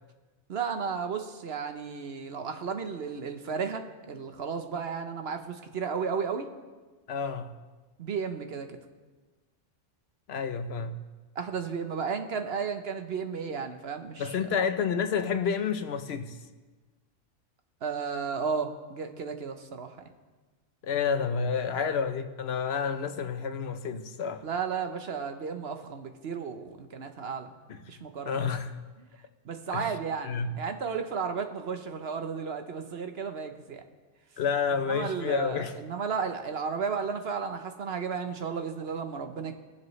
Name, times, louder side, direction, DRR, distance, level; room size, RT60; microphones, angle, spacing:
voice 1, 0.5-6.5 8.0-8.8 11.3-14.5 17.8-20.1 24.4-27.5 27.9-28.5 29.4-33.8 34.9-39.5, right 6 dB, 60° right, 1.0 m, -33 dB
voice 2, 7.1-7.5 10.3-10.9 14.2-16.4 20.8-24.4 27.7-27.8 28.2-28.8 29.7-29.9 30.2-30.5 34.4-35.7, left 6 dB, 60° left, 0.9 m, -29 dB
21.5 x 7.5 x 3.2 m
omnidirectional pair, 1.3 m